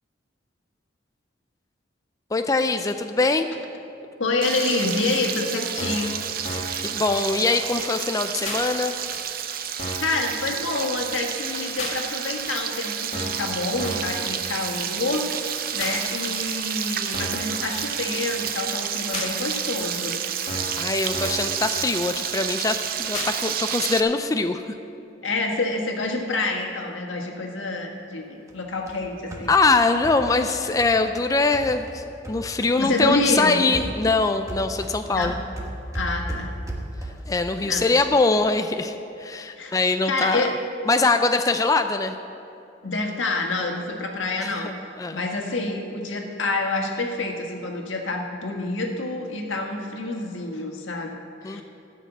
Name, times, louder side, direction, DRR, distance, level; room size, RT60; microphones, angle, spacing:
voice 1, 2.3-3.5 6.8-8.9 20.8-24.8 29.5-35.4 37.3-40.4 40.9-42.2 44.4-45.2 51.4-51.6, left 3 dB, 20° left, 7 dB, 0.3 m, -23 dB
voice 2, 4.2-6.1 10.0-20.1 25.2-29.5 32.8-33.6 35.1-35.3 35.9-36.5 37.6-37.9 39.6-40.5 42.8-44.7 45.1-51.6, left 2 dB, 90° left, 1 dB, 1.6 m, -27 dB
Frying (food), 4.4-24.0, right 9 dB, 50° right, 0.6 m, -30 dB
sound 1, 5.1-5.2 5.8-6.1 6.4-6.8 7.1-7.2 7.4-7.5 7.8-7.9 8.4-8.6 9.1-9.2 9.8-10.1 10.4-10.5 10.8-10.9 11.1-11.2 11.8-12.0 12.5-12.6 13.1-13.5 13.8-14.1 14.5-14.6 14.8-14.9 15.1-15.2 15.8-16.0 16.5-16.6 17.1-17.5 17.8-17.9 18.1-18.2 18.5-18.6 19.1-19.3 19.8-19.9 20.5-20.8 21.1-21.5 21.8-21.9 22.1-22.2 22.5-22.6 23.1-23.3 23.8-23.9, left 1 dB, 40° left, 2.0 m, -33 dB
sound 2, 28.5-32.8 33.0-37.4, right 1 dB, 15° right, 1.3 m, -36 dB
13.0 x 6.5 x 8.2 m, 2.7 s
head